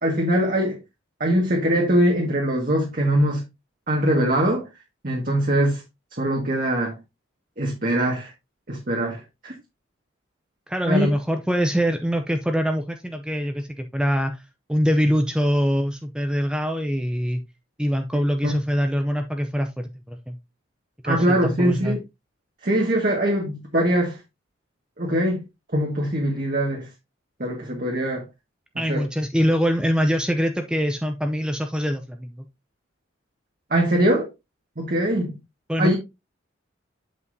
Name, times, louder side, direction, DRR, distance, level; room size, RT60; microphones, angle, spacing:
voice 1, 0.0-0.8 1.2-3.4 3.9-4.7 5.0-5.8 6.2-7.0 7.6-8.3 8.7-9.5 10.9-11.1 18.4-18.5 21.0-22.0 22.6-24.2 25.0-25.4 25.7-26.9 27.4-28.2 28.9-29.0 33.7-34.3 34.8-35.4 35.8-36.0, right 1 dB, 45° right, 1.7 m, -22 dB
voice 2, 10.7-14.4 14.7-17.4 17.8-20.4 21.0-22.0 28.8-32.4 35.7-36.0, equal, 5° right, 0.5 m, -24 dB
8.1 x 7.3 x 2.7 m
head